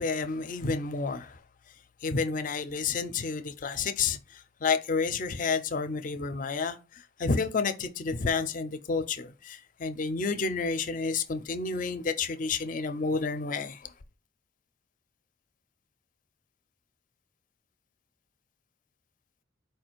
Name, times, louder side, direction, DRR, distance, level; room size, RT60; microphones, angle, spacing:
voice 1, 0.0-1.3 2.0-4.2 4.6-6.8 7.2-13.8, left 4 dB, 40° left, 0.4 m, -30 dB
4.6 x 2.5 x 4.4 m
head